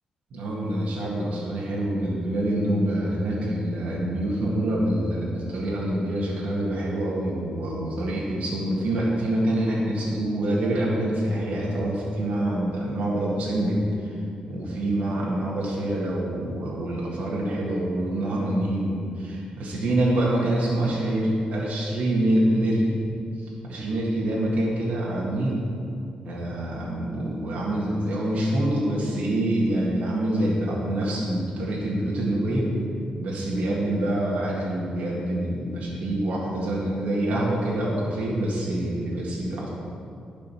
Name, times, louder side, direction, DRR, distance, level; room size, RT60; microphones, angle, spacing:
voice 1, 0.3-14.1 14.5-23.0 23.4-25.6 26.2-32.7 33.2-39.7, right 1 dB, 75° right, -5 dB, 1.9 m, -26 dB
10.5 x 5.1 x 6.1 m, 2.4 s
cardioid pair, 110°, 2 cm